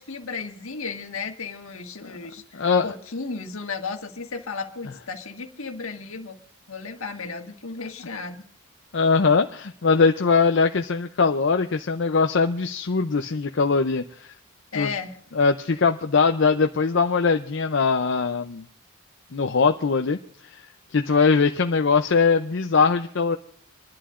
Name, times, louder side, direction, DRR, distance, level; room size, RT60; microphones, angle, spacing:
voice 1, 0.0-6.4 6.7-8.4 14.7-15.2, left 4 dB, 75° left, 5 dB, 1.6 m, -34 dB
voice 2, 2.5-2.9 8.9-14.3 14.7-14.9 15.3-18.7 19.3-20.2 20.5-20.6 20.9-23.4, left 4 dB, 55° left, 6 dB, 0.5 m, -21 dB
27.5 x 11.5 x 2.5 m, 0.65 s
head